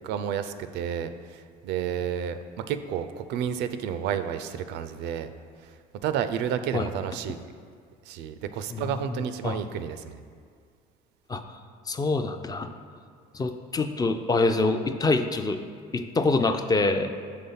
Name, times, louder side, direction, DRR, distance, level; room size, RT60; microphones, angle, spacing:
voice 1, 0.0-5.3 5.6-7.4 8.1-10.2, right 8 dB, 70° right, 10 dB, 0.4 m, -31 dB
voice 2, 11.9-12.7 13.3-15.6 15.9-17.1, left 3 dB, 20° left, 7 dB, 0.3 m, -25 dB
5.7 x 3.4 x 5.5 m, 2.1 s
supercardioid pair, 90°, 18 cm